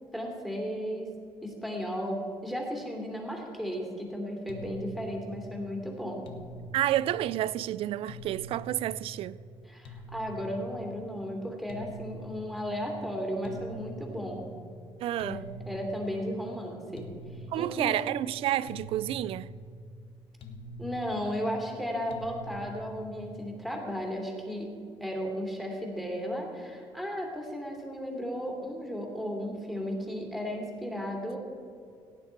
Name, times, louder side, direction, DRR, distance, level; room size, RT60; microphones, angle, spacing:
voice 1, 0.1-1.1 1.4-6.2 9.6-14.4 15.2-17.9 20.8-24.7 25.0-31.4, equal, ahead, 2.7 m, -35 dB
sound 1, 4.5-23.8, right 1 dB, 65° left, 1.3 m, -45 dB
voice 2, 6.7-9.4 15.0-15.5 17.5-19.5, right 13 dB, 70° right, 0.4 m, -30 dB
17.5 x 9.2 x 4.6 m
cardioid pair, 125°, 10 cm